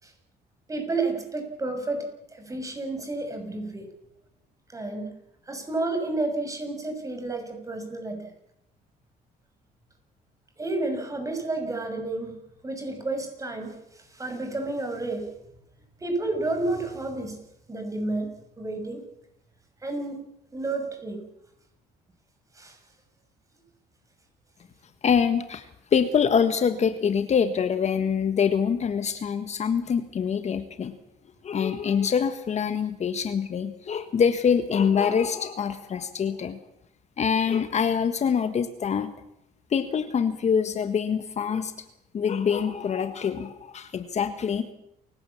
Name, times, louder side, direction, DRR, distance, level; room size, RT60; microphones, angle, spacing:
voice 1, 0.7-2.1 2.3-3.9 4.7-5.1 5.5-8.3 10.6-12.3 12.6-15.3 16.0-17.4 17.7-18.3 18.6-19.0 19.8-20.2 20.5-21.2 22.6-22.8, right 2 dB, 20° right, 5 dB, 6.4 m, -31 dB
voice 2, 25.0-25.7 25.9-31.0 31.4-36.6 37.2-39.1 39.7-41.7 42.1-44.7, left 7 dB, 40° left, 9 dB, 1.5 m, -25 dB
29.0 x 16.5 x 7.2 m, 0.81 s
cardioid pair, 110°, 17 cm